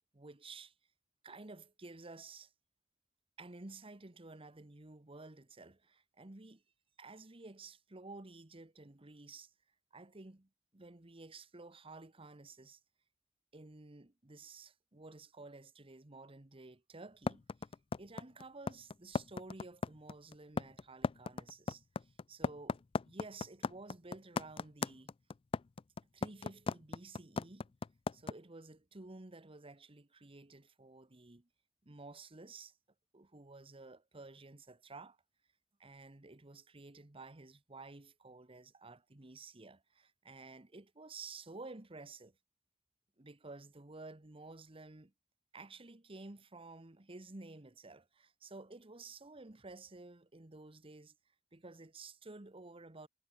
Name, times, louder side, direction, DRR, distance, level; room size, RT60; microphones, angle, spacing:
voice 1, 0.1-0.7 1.2-2.5 3.4-6.6 7.0-9.5 9.9-12.8 13.5-17.7 18.0-25.1 26.1-27.7 28.1-31.5 31.8-32.8 33.1-35.2 35.8-42.4 43.2-45.1 45.5-51.1 51.5-53.1, right 3 dB, 30° right, 1.2 m, -52 dB
sound 1, 17.3-28.3, left 4 dB, 30° left, 0.3 m, -36 dB
head